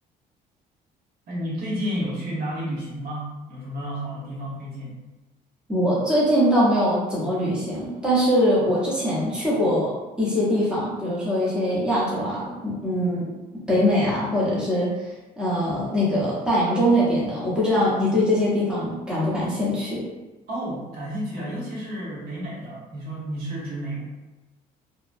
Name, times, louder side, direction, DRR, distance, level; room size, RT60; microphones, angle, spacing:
voice 1, 1.3-4.9 20.5-24.0, equal, 60° right, -6 dB, 1.1 m, -31 dB
voice 2, 5.7-9.9 10.2-13.3 13.7-20.0, equal, 5° right, -8 dB, 0.9 m, -22 dB
2.9 x 2.2 x 2.5 m, 1.1 s
cardioid pair, 110°, 17 cm